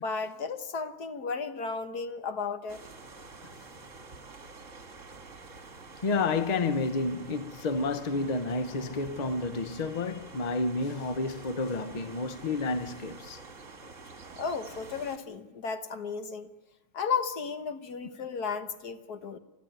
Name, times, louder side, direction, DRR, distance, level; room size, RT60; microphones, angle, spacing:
voice 1, 0.0-2.8 14.4-16.5 16.9-19.4, left 5 dB, 55° left, 1.6 m, -34 dB
sound 1, 2.7-15.2, right 3 dB, 40° right, 2.1 m, -48 dB
voice 2, 6.0-13.4, left 3 dB, 75° left, 0.3 m, -30 dB
29.0 x 13.0 x 9.4 m
omnidirectional pair, 2.2 m